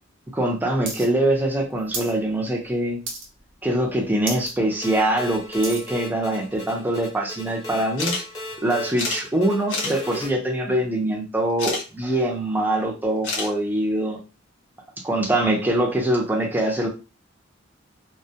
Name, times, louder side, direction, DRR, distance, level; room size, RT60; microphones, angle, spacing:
voice 1, 0.3-3.0 3.6-8.2 8.6-14.2 15.0-16.9, right 1 dB, 10° right, 0 dB, 0.5 m, -23 dB
sound 1, 0.9-1.1 1.3-2.2 2.5-2.7 3.1-3.5 3.9-4.0 4.2-4.5 5.0-5.9 6.6-6.7, right 3 dB, 80° right, 0.7 m, -32 dB
sound 2, 4.8-10.3, left 1 dB, 20° left, 0.9 m, -36 dB
sound 3, 8.0-8.2 8.5-8.6 9.0-9.2 9.7-9.9 11.6-11.8 13.2-13.5, left 3 dB, 75° left, 0.7 m, -27 dB
2.2 x 2.1 x 2.7 m, 0.31 s
head